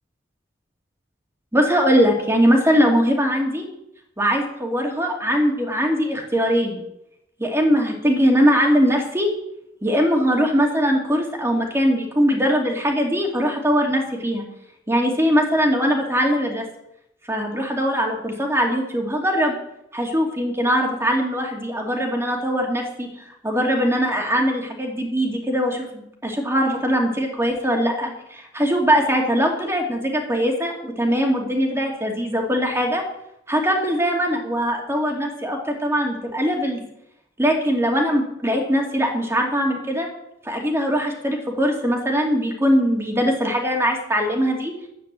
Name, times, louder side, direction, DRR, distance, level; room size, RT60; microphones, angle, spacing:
voice 1, 1.5-3.7 4.2-6.8 7.4-9.3 9.8-14.4 14.9-16.7 17.3-19.6 19.9-33.0 33.5-36.8 37.4-40.1 40.4-44.7, equal, 15° right, 1 dB, 2.6 m, -21 dB
11.5 x 9.1 x 7.6 m, 0.81 s
head